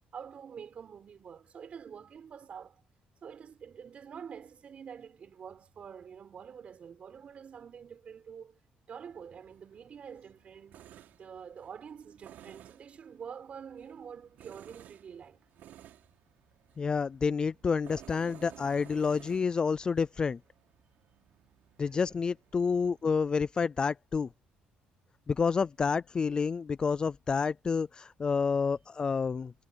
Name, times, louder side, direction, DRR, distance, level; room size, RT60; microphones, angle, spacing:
voice 1, 0.1-2.8 3.2-8.6 8.9-15.4 21.8-22.2, right 7 dB, 40° right, 7.1 m, -47 dB
Tools, 9.1-23.2, right 11 dB, 65° right, 6.0 m, -56 dB
voice 2, 16.8-20.4 21.8-24.3 25.3-29.5, left 5 dB, 25° left, 0.4 m, -29 dB
cardioid pair, 135°, 3 cm